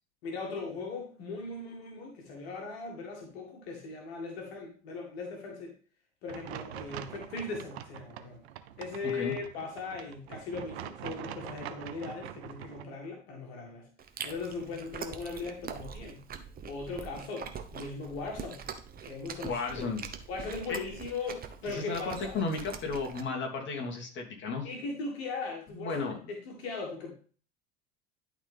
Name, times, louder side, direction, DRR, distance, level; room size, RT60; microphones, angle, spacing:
voice 1, 0.2-5.7 6.2-8.4 8.8-13.9 14.2-16.2 16.7-18.7 19.0-19.9 20.3-22.4 24.6-27.1, left 4 dB, 60° left, 0 dB, 2.0 m, -39 dB
sound 1, 6.3-12.8, right 11 dB, 70° right, 0.7 m, -44 dB
Chewing mastication, 14.0-23.2, right 6 dB, 25° right, 1.0 m, -43 dB
voice 2, 19.4-20.0 20.7-20.8 21.7-24.7 25.8-26.3, left 4 dB, 35° left, 1 dB, 2.4 m, -34 dB
11.5 x 4.2 x 3.6 m, 0.40 s
figure-of-eight pair, 75°, 34 cm